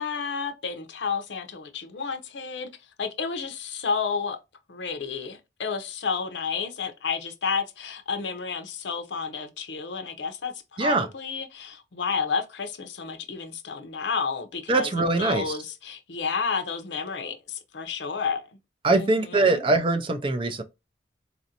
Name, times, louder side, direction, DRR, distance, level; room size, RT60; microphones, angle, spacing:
voice 1, 0.0-2.7 3.0-4.4 4.7-18.5 18.9-19.6, left 5 dB, 80° left, 0.6 m, -31 dB
voice 2, 14.7-15.5 18.8-20.6, right 3 dB, 30° right, 0.4 m, -22 dB
4.1 x 2.5 x 2.7 m
head